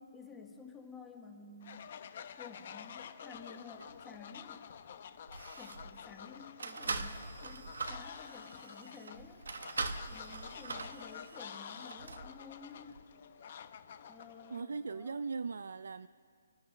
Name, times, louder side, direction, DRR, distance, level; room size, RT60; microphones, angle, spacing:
voice 1, 0.0-1.9 2.4-4.7 5.5-9.4 10.1-13.0 14.0-15.3, left 4 dB, 5° left, 1.1 m, -52 dB
Fowl, 1.6-14.6, left 8 dB, 35° left, 0.7 m, -50 dB
sound 1, 3.8-4.0 4.8-4.9 5.3-6.0 6.6-12.3 12.9-13.0, right 4 dB, 85° right, 1.1 m, -42 dB
voice 2, 14.5-16.1, right 4 dB, 70° right, 0.3 m, -39 dB
29.5 x 11.0 x 3.3 m
hypercardioid pair, 175°, 0 cm